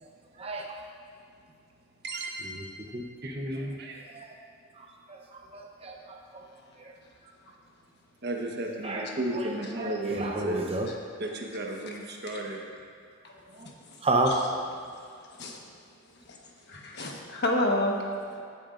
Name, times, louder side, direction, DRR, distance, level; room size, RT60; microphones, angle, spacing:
voice 1, 0.4-0.7 2.5-2.6 2.9-3.8 4.1-4.3 4.8-6.5 6.8-6.9 8.8-9.1 9.3-9.5 9.8-10.9 13.5-13.7 14.0-14.3, right 2 dB, 30° right, 1 dB, 0.8 m, -32 dB
voice 2, 2.0-2.7 3.2-4.0 8.2-10.6 11.2-12.6, right 2 dB, 50° right, 0 dB, 1.2 m, -34 dB
voice 3, 13.8-14.5 14.9-15.8 16.1-18.4, left 1 dB, 55° left, 0 dB, 1.3 m, -32 dB
17.5 x 8.9 x 2.6 m, 2.3 s
head